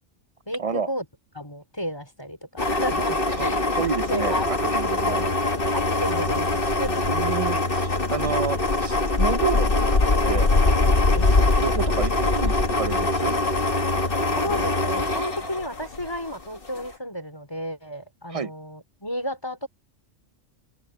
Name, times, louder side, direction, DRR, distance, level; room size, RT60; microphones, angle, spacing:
voice 1, 0.5-1.0 1.3-3.8 4.1-4.4 4.9-5.3 5.7-6.5 6.8-7.0 11.0-11.3 14.3-19.7, equal, 20° left, 4.6 m, -32 dB
sound 1, 2.6-16.3 16.7-16.9, left 2 dB, 45° left, 1.7 m, -23 dB
voice 2, 3.3-5.2 7.1-10.5 11.6-13.4 18.3-18.5, right 5 dB, 35° right, 0.6 m, -30 dB
open air
omnidirectional pair, 1.3 m